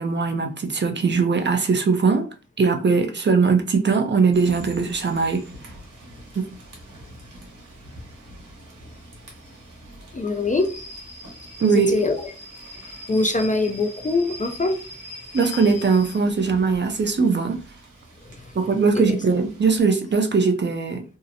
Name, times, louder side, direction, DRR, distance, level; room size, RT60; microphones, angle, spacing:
voice 1, 0.0-2.3 2.6-5.4 6.4-6.5 11.6-12.0 15.3-17.6 18.6-21.0, right 4 dB, 40° right, 0.4 m, -20 dB
Rain / Train, 4.3-19.8, left 1 dB, 85° right, 1.0 m, -43 dB
voice 2, 10.1-10.7 11.6-12.3 13.1-14.8 18.2-18.5 18.9-19.2, left 3 dB, 25° left, 0.3 m, -23 dB
2.7 x 2.0 x 2.6 m
wide cardioid pair, 75°, 30 cm